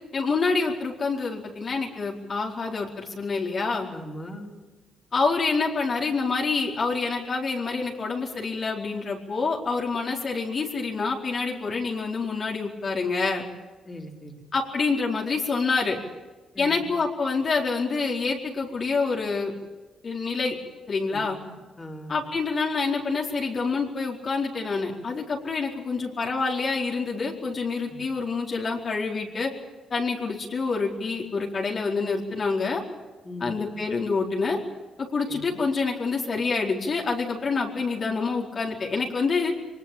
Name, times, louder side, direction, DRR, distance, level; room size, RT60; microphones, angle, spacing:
voice 1, 0.1-3.9 5.1-13.4 14.5-16.0 16.6-19.5 20.0-20.5 20.9-21.4 22.1-29.5 29.9-32.8 33.4-34.6 35.0-39.5, left 4 dB, 45° left, -1 dB, 4.5 m, -27 dB
voice 2, 3.9-4.5 13.8-14.4 16.5-16.7 21.1-22.2 27.9-28.0 33.2-33.5 35.3-35.6, equal, 20° left, 1 dB, 4.7 m, -40 dB
23.5 x 21.0 x 8.8 m, 1.3 s
cardioid pair, 90°, 0 cm